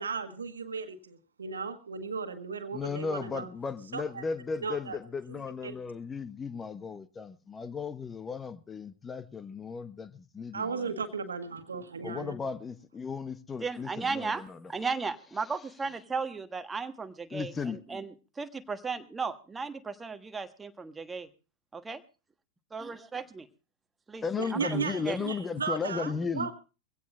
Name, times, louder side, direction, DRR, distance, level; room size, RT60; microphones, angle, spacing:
voice 1, 0.0-3.5 3.9-4.2 4.6-5.0 5.3-5.8 10.5-12.4 24.4-26.6, right 5 dB, 70° right, 1.5 m, -36 dB
voice 2, 2.7-10.9 12.0-14.7 17.3-17.8 24.2-26.5, left 5 dB, 15° left, 0.9 m, -35 dB
voice 3, 13.6-21.3 21.7-22.0 22.7-23.4 24.1-24.2 24.5-25.2, right 4 dB, 15° right, 1.3 m, -36 dB
23.5 x 17.0 x 2.4 m
figure-of-eight pair, 90°, 0 cm